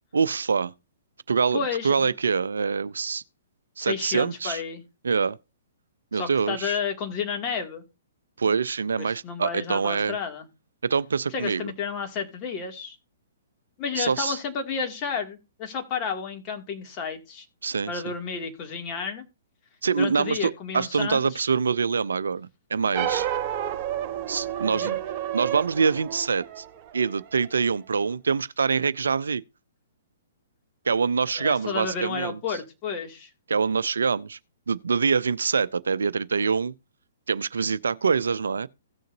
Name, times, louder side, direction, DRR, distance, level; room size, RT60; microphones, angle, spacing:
voice 1, 0.1-0.7 1.3-3.2 3.8-4.6 5.0-5.4 6.1-6.8 8.4-10.2 10.8-11.7 14.0-14.4 17.6-17.9 19.8-23.3 24.3-25.0 25.3-26.6 26.9-29.4 30.9-32.4 33.5-34.4 34.7-36.7 37.3-38.7, right 5 dB, 70° right, 0.5 m, -25 dB
voice 2, 1.5-2.1 3.8-4.8 6.1-7.8 9.0-10.5 11.3-13.0 13.8-17.5 17.9-19.2 20.0-21.4 23.0-23.2 24.7-24.9 31.4-33.3, left 6 dB, 30° left, 2.4 m, -31 dB
sound 1, 22.9-27.5, right 11 dB, 35° right, 1.1 m, -30 dB
16.5 x 6.4 x 2.7 m
figure-of-eight pair, 120°, 0 cm